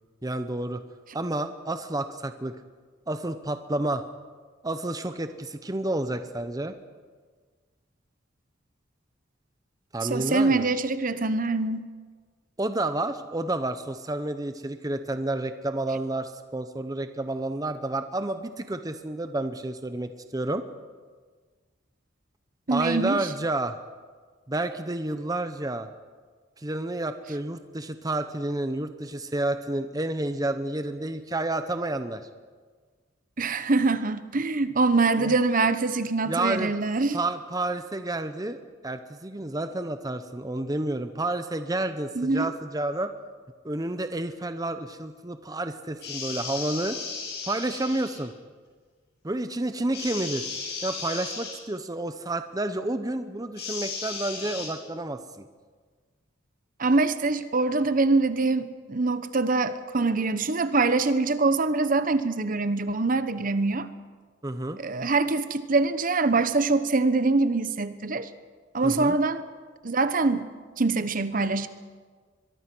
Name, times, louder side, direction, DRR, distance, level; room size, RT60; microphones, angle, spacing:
voice 1, 0.2-0.8 1.1-2.5 3.1-4.0 4.6-6.8 9.9-10.7 12.6-20.7 22.7-23.8 24.5-25.9 26.6-32.3 35.2-35.3 36.3-36.7 37.1-43.1 43.6-47.0 47.4-48.3 49.2-50.5 50.8-55.4 64.4-64.8 68.8-69.2, right 2 dB, 20° right, 9 dB, 0.9 m, -30 dB
voice 2, 10.1-11.9 22.7-23.2 33.4-37.2 42.1-42.5 56.8-63.9 64.8-68.3 68.7-69.4 69.8-70.5 70.8-71.7, right 3 dB, 45° right, 12 dB, 1.0 m, -24 dB
sound 1, 46.0-48.2 49.9-51.6 53.6-54.7, left 5 dB, 60° left, 7.5 m, -35 dB
23.0 x 23.0 x 6.2 m, 1.5 s
head